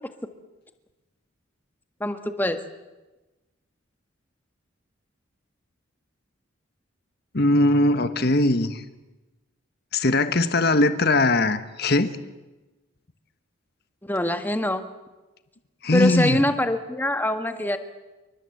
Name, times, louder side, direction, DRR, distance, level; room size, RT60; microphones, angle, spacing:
voice 1, 2.0-2.6 14.0-14.9 15.9-17.8, left 1 dB, 10° left, 1.6 m, -24 dB
voice 2, 7.3-8.8 9.9-12.1 15.8-16.4, left 2 dB, 50° left, 1.4 m, -20 dB
28.0 x 24.0 x 7.9 m
head